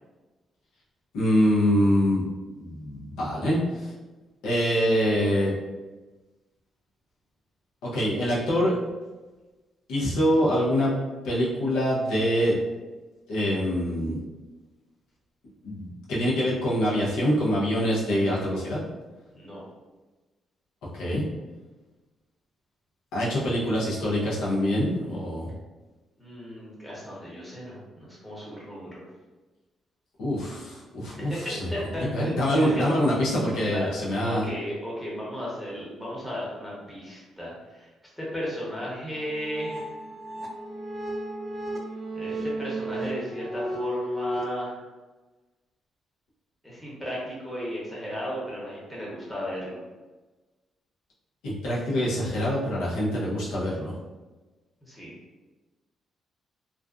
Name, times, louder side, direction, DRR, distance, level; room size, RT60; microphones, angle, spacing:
voice 1, 1.1-2.2 2.6-3.9 4.4-5.5 7.8-8.7 9.9-10.9 11.2-12.6 13.3-14.2 15.6-18.8 20.9-21.2 23.1-25.5 30.2-31.7 32.1-34.5 51.4-53.9, equal, 90° left, -5 dB, 0.7 m, -25 dB
voice 2, 19.3-19.6 26.2-29.0 31.2-32.9 33.7-33.9 34.2-37.9 38.2-39.9 42.1-44.8 46.6-49.8 54.8-55.1, equal, 5° left, -6 dB, 0.9 m, -35 dB
sound 1, 39.1-44.5, right 1 dB, 45° right, 0.4 m, -34 dB
2.4 x 2.3 x 2.4 m, 1.2 s
cardioid pair, 90°, 0 cm